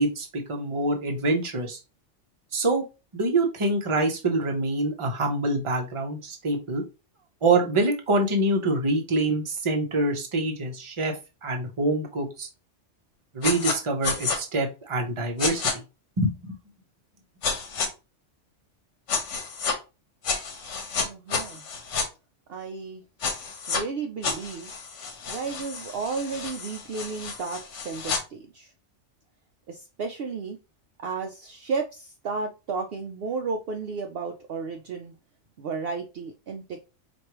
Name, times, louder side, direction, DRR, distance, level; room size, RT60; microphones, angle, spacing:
voice 1, 0.0-1.8 2.5-2.8 3.1-6.8 7.4-11.2 11.4-12.5 13.3-15.8 16.2-16.6, right 2 dB, 30° right, 2 dB, 0.7 m, -25 dB
sound 1, 13.4-13.8 14.0-14.4 15.4-15.7 17.4-17.9 19.1-19.8 20.2-22.1 23.2-23.8 24.2-28.2, left 5 dB, 75° left, 1.1 m, -30 dB
voice 2, 21.1-21.7 22.5-23.0 23.7-24.7 25.3-28.7 29.7-30.6 31.0-35.1 35.6-36.8, right 4 dB, 65° right, 3 dB, 0.7 m, -33 dB
4.6 x 2.6 x 3.0 m, 0.29 s
omnidirectional pair, 1.3 m